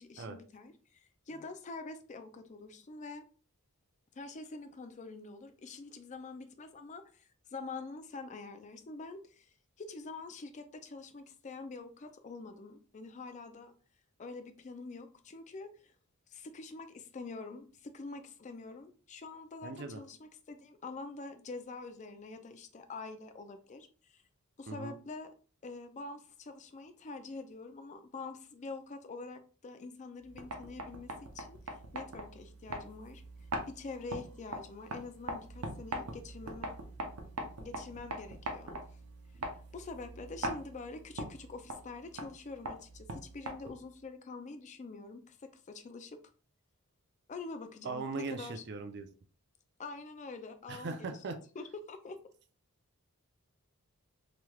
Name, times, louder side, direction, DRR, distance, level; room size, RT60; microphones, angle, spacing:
voice 1, 0.0-3.3 4.1-9.5 9.8-13.7 14.2-15.9 16.3-24.2 24.6-25.3 25.6-31.6 31.9-33.2 33.7-36.7 37.1-37.2 37.6-38.8 39.7-46.2 47.3-48.6 49.8-51.2 51.6-52.2, left 3 dB, 30° left, 7 dB, 0.4 m, -46 dB
voice 2, 19.6-20.0 24.7-25.0 47.8-49.1 50.7-51.4, right 3 dB, 50° right, 6 dB, 0.5 m, -39 dB
sound 1, 30.2-44.0, right 1 dB, 85° right, 0.7 m, -42 dB
3.2 x 3.0 x 2.3 m, 0.39 s
head